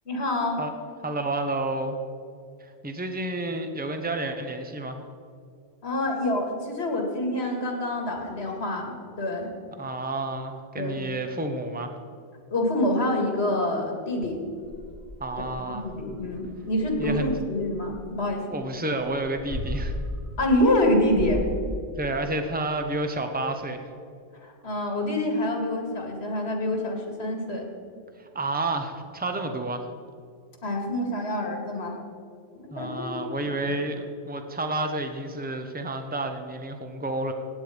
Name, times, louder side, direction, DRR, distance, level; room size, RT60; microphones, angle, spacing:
voice 1, 0.1-0.6 5.8-9.5 10.8-11.0 12.5-14.4 15.7-18.5 20.4-21.4 24.3-27.7 30.6-32.0 32.5-33.6, left 1 dB, 80° left, 2 dB, 2.4 m, -26 dB
voice 2, 1.0-2.0 2.6-5.0 9.8-11.9 15.2-15.8 17.0-17.3 18.5-19.9 22.0-23.9 28.2-29.9 32.7-37.3, right 2 dB, 10° right, 5 dB, 0.9 m, -30 dB
sound 1, 14.6-18.0 19.0-21.4, left 1 dB, 50° right, 2.0 m, -36 dB
16.5 x 8.9 x 5.1 m, 2.3 s
omnidirectional pair, 1.1 m